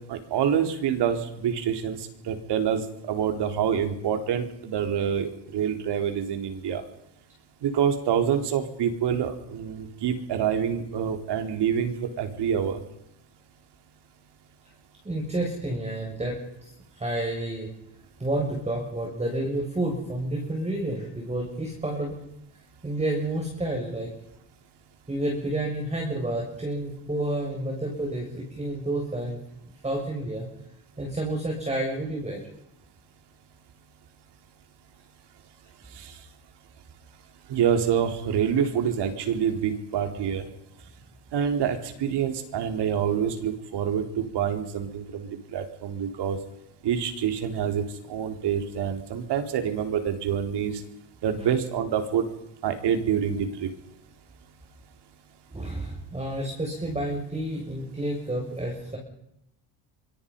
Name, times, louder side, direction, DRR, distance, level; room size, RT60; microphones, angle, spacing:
voice 1, 0.1-2.0 2.3-6.8 7.6-12.8 36.0-36.1 37.5-40.4 41.3-46.4 46.8-50.8 51.2-52.2 52.6-53.7, right 8 dB, 60° right, 7 dB, 4.1 m, -26 dB
voice 2, 15.0-17.7 18.2-22.1 22.8-24.1 25.1-29.4 29.8-30.5 31.0-32.4 55.5-59.0, right 1 dB, 15° right, 0 dB, 6.7 m, -30 dB
24.5 x 24.5 x 5.5 m, 0.80 s
cardioid pair, 115°, 45 cm